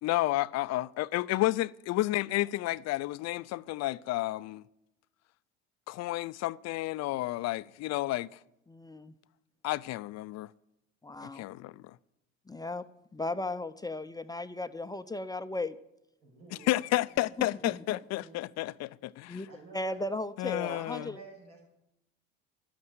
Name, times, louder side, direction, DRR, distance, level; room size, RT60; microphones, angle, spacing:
voice 1, 0.0-4.6 5.9-8.4 9.6-10.5 11.2-12.0 16.7-19.5 20.4-21.1, left 17 dB, 55° left, 0.5 m, -31 dB
voice 2, 8.7-9.1 11.0-11.4 12.5-12.9 13.1-15.8 17.4-18.0 19.3-19.5 19.7-21.2, left 2 dB, 10° left, 0.6 m, -36 dB
voice 3, 16.2-18.5 19.4-20.0 20.7-21.6, right 4 dB, 85° right, 6.4 m, -52 dB
12.0 x 8.7 x 9.3 m
hypercardioid pair, 75°, 32 cm